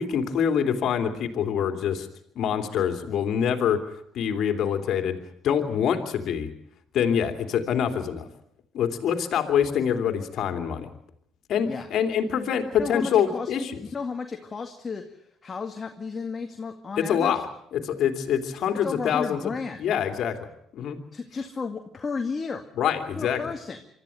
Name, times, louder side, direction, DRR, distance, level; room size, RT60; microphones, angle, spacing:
voice 1, 0.0-2.1 2.3-3.8 4.1-5.2 5.4-6.5 6.9-8.3 8.7-10.9 11.5-13.7 17.0-17.4 17.7-21.0 22.8-23.4, left 8 dB, 60° left, 6 dB, 2.9 m, -25 dB
voice 2, 12.8-13.5 13.9-17.3 18.8-19.8 21.1-22.6 23.2-23.8, left 4 dB, 35° left, 4 dB, 2.1 m, -33 dB
24.5 x 13.5 x 9.3 m, 0.74 s
hypercardioid pair, 65°, 0 cm